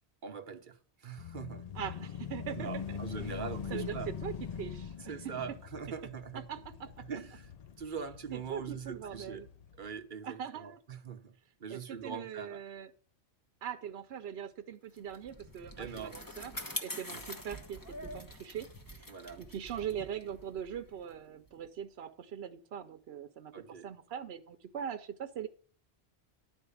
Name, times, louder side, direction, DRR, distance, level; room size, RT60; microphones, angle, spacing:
voice 1, 0.2-1.7 2.5-4.1 5.0-6.4 7.0-7.5 7.8-9.4 9.8-11.3 11.6-12.6 15.8-16.2 17.1-17.2 19.1-19.4 23.5-23.9, right 6 dB, 55° right, 1.0 m, -42 dB
sound 1, 1.2-10.0, left 7 dB, 50° left, 0.5 m, -43 dB
voice 2, 1.7-3.0 3.7-5.4 6.5-7.1 8.3-9.5 10.2-10.8 11.7-12.9 13.6-16.5 16.8-19.1 19.4-25.5, right 8 dB, 75° right, 0.9 m, -41 dB
Bicycle, 15.0-21.7, left 1 dB, 20° left, 1.1 m, -45 dB
11.0 x 4.5 x 7.0 m
omnidirectional pair, 1.1 m